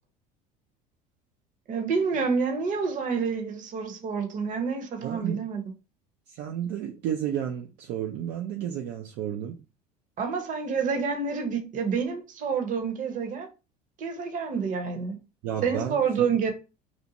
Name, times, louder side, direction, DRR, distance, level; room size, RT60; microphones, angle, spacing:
voice 1, 1.7-5.6 10.2-13.5 14.0-15.2 15.6-16.5, right 5 dB, 45° right, 0.9 m, -28 dB
voice 2, 5.0-5.4 6.3-9.6 15.4-16.0, right 10 dB, 65° right, 0.5 m, -32 dB
2.6 x 2.1 x 2.8 m
supercardioid pair, 95°, 19 cm